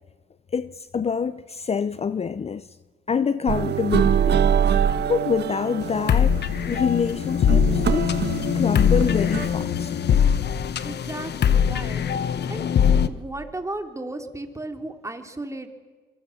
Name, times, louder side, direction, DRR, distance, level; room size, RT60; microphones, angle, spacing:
voice 1, 0.5-2.7 3.1-4.4 5.1-8.2 8.5-9.9, left 6 dB, 30° left, 0.7 m, -26 dB
sound 1, 3.5-9.6, right 8 dB, 55° right, 1.5 m, -24 dB
sound 2, 5.8-13.1, left 8 dB, 55° left, 1.2 m, -22 dB
voice 2, 10.8-12.7 13.1-15.7, right 2 dB, 15° right, 3.1 m, -35 dB
26.5 x 25.5 x 7.2 m
cardioid pair, 90°, 20 cm